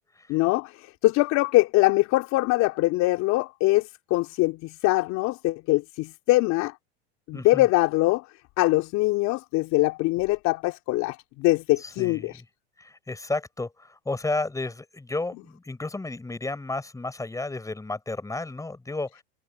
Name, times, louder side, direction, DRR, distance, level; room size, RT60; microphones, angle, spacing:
voice 1, 0.3-6.7 7.3-8.2 8.6-12.3, left 20 dB, 55° left, 3.3 m, -23 dB
voice 2, 7.3-7.7 11.8-12.5 12.8-19.2, left 2 dB, 10° left, 7.4 m, -32 dB
hypercardioid pair, 110°, 33 cm